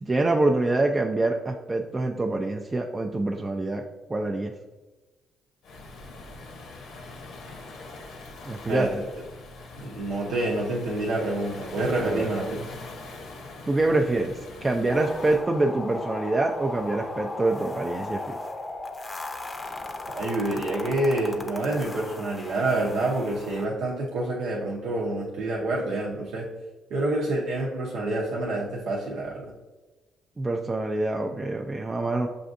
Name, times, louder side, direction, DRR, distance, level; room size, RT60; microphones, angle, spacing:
voice 1, 0.0-3.8 4.1-4.5 8.4-8.9 12.0-12.3 13.7-18.2 30.4-32.3, right 2 dB, 25° right, 2 dB, 0.3 m, -25 dB
Waves surf, 5.6-15.4, left 3 dB, 75° left, 0.7 m, -42 dB
voice 2, 9.8-12.8 20.1-26.5 26.9-29.5, right 2 dB, 85° right, -4 dB, 0.7 m, -27 dB
sound 1, 14.9-23.7, left 2 dB, 25° left, 0.6 m, -37 dB
6.6 x 2.6 x 2.5 m, 1.2 s
cardioid pair, 90°, 0 cm